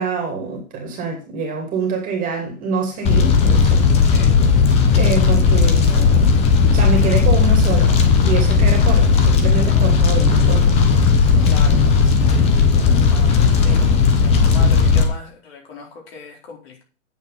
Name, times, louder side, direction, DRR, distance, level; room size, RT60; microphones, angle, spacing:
voice 1, 0.0-3.8 4.9-6.4 6.7-10.8 11.3-12.4 13.6-13.9, right 4 dB, 20° right, 2.7 m, -26 dB
Fire, 3.0-15.0, left 5 dB, 15° left, 1.1 m, -15 dB
voice 2, 4.0-4.4 11.4-11.8 13.1-13.9 14.2-16.8, left 4 dB, 45° left, 4.3 m, -38 dB
9.0 x 7.2 x 5.8 m
hypercardioid pair, 135°, 40 cm